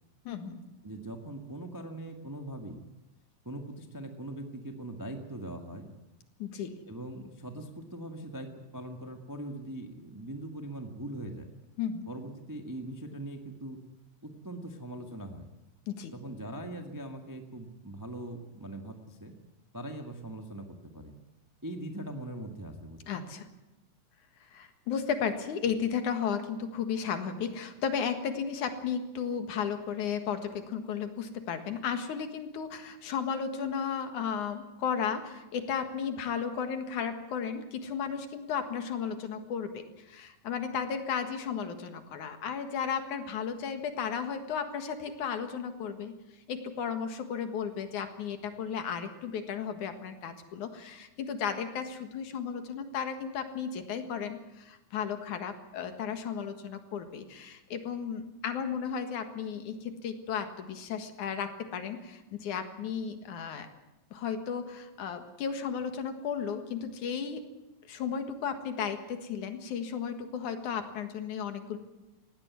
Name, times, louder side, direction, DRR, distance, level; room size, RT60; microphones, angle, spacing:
voice 1, 0.2-0.6 6.4-6.8 11.8-12.1 15.9-16.1 23.1-23.5 24.4-46.2 46.5-63.7 64.1-67.4 67.9-71.8, left 7 dB, 70° left, 8 dB, 3.0 m, -34 dB
voice 2, 0.8-2.8 3.4-5.9 6.9-11.5 12.1-13.8 14.2-15.5 16.1-19.3 19.7-21.1 21.6-23.2, right 1 dB, 10° right, 4 dB, 0.8 m, -41 dB
19.0 x 16.0 x 9.5 m, 1.0 s
omnidirectional pair, 3.7 m